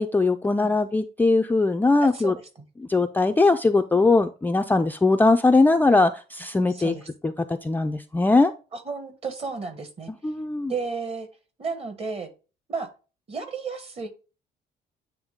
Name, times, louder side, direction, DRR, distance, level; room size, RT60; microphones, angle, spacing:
voice 1, 0.0-2.4 2.8-6.9 7.2-8.5 10.2-10.7, left 3 dB, 10° left, 5 dB, 0.3 m, -20 dB
voice 2, 2.0-2.3 6.7-7.1 8.7-10.1 10.7-11.3 11.6-12.3 12.7-12.9 13.3-14.1, right 4 dB, 35° right, 8 dB, 1.3 m, -32 dB
8.8 x 3.1 x 3.6 m, 0.33 s
cardioid pair, 110°, 17 cm